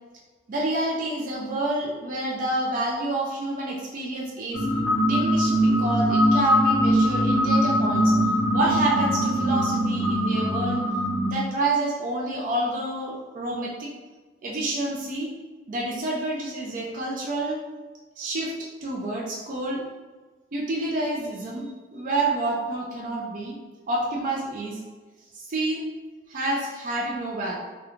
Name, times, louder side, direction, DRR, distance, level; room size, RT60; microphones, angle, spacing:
voice 1, 0.5-4.6 5.0-8.1 8.5-10.8 11.2-13.9 14.4-15.3 15.7-17.6 18.2-19.8 20.5-23.5 23.9-24.8 25.3-25.9 26.3-27.5, right 2 dB, 45° right, -3 dB, 0.4 m, -28 dB
sound 1, 4.5-11.3, equal, 5° left, 0.8 m, -22 dB
2.4 x 2.2 x 2.9 m, 1.3 s
head